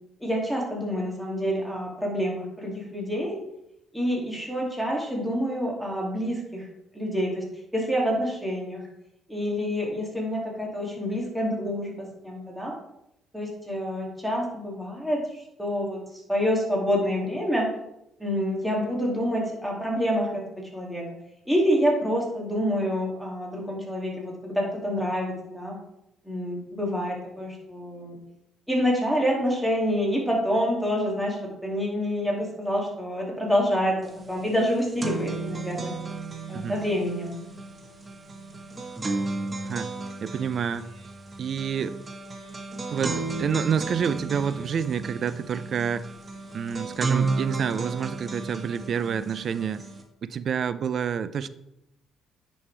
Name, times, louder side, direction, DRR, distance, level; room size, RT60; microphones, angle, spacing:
voice 1, 0.2-3.4 3.9-6.7 6.9-7.4 7.7-8.8 9.3-12.7 13.3-16.0 16.3-17.7 18.2-21.1 21.5-25.8 26.2-28.2 28.7-34.0 34.3-35.9 36.5-37.4, equal, ahead, -2 dB, 2.4 m, -27 dB
sound 1, 34.1-34.2 34.5-50.0, right 3 dB, 25° right, 1.2 m, -33 dB
voice 2, 40.2-40.9 41.4-42.0 42.9-46.1 46.5-49.9 50.2-51.5, right 7 dB, 55° right, 14 dB, 0.4 m, -28 dB
9.8 x 5.4 x 3.3 m, 0.82 s
cardioid pair, 90°, 0 cm